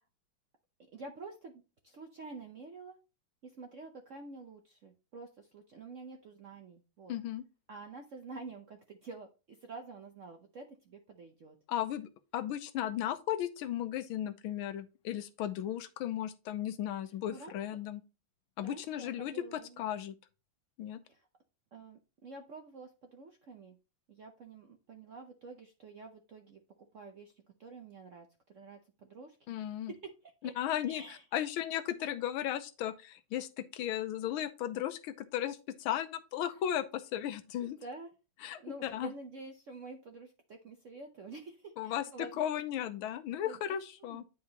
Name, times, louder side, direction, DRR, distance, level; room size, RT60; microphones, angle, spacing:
voice 1, 0.9-3.0 3.4-7.1 7.7-11.6 17.3-17.6 18.6-19.8 21.1-21.3 21.7-23.8 24.1-26.6 26.9-30.5 30.9-31.7 37.6-38.1 38.5-42.4 43.3-44.2, right 3 dB, 65° right, 0.7 m, -49 dB
voice 2, 7.1-7.4 11.7-18.0 18.6-20.2 20.8-21.0 29.5-29.9 30.6-31.0 31.3-37.8 38.4-39.1 41.8-42.1 42.4-44.2, left 11 dB, 85° left, 1.5 m, -35 dB
9.5 x 4.7 x 2.8 m
omnidirectional pair, 2.2 m